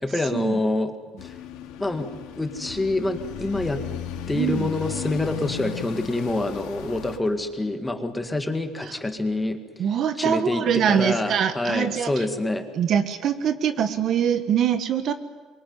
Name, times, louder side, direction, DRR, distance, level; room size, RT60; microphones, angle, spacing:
voice 1, 0.0-1.0 1.2-1.4 1.8-2.1 2.3-3.9 4.3-9.6 10.2-12.7, left 2 dB, 10° left, 6 dB, 2.0 m, -26 dB
sound 1, 1.2-7.2, left 10 dB, 80° left, 2.9 m, -35 dB
voice 2, 4.3-4.7 8.8-8.9 9.8-12.2 12.7-15.1, right 8 dB, 45° right, 10 dB, 1.5 m, -23 dB
26.0 x 23.5 x 9.5 m, 1.4 s
cardioid pair, 145°, 0 cm